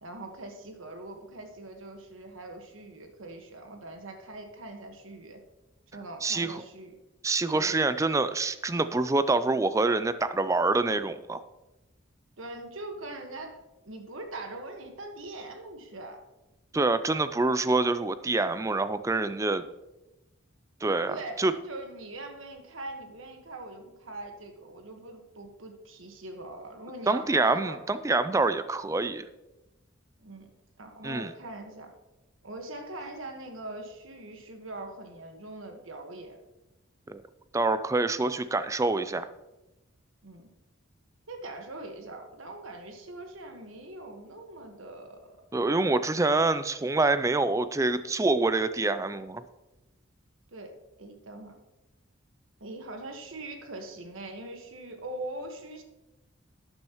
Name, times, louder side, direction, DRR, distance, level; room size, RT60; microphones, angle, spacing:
voice 1, 0.0-5.4 5.9-6.9 7.5-7.8 12.4-13.6 13.8-16.2 21.1-28.1 30.2-30.5 30.8-31.9 32.4-36.4 40.2-40.5 41.3-45.4 50.5-51.6 52.6-55.8, right 2 dB, 75° right, 4 dB, 1.4 m, -42 dB
voice 2, 6.2-6.6 7.2-11.4 16.7-19.6 20.8-21.5 27.1-29.3 31.0-31.3 37.1-37.2 37.5-39.3 45.5-49.4, right 3 dB, 15° right, 12 dB, 0.3 m, -26 dB
12.0 x 8.7 x 3.0 m, 1.0 s
head